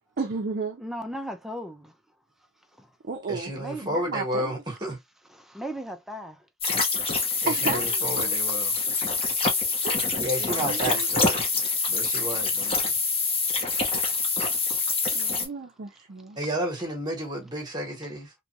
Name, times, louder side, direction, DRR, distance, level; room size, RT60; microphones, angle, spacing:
voice 1, 0.2-0.8 3.0-3.5 3.8-4.5 7.5-8.4 9.8-10.1 10.4-11.3 15.1-16.4, right 4 dB, 50° right, 0.5 m, -33 dB
voice 2, 0.8-1.9 2.8-2.9 3.5-3.9 5.3-6.5 9.2-9.3 9.7-9.8, equal, ahead, 0.5 m, -37 dB
voice 3, 3.3-5.0 7.4-8.7 10.2-11.4 11.9-12.9 16.4-18.3, equal, 20° right, 1.1 m, -32 dB
sound 1, 6.6-15.5, left 4 dB, 30° left, 0.9 m, -26 dB
3.0 x 2.4 x 2.7 m
head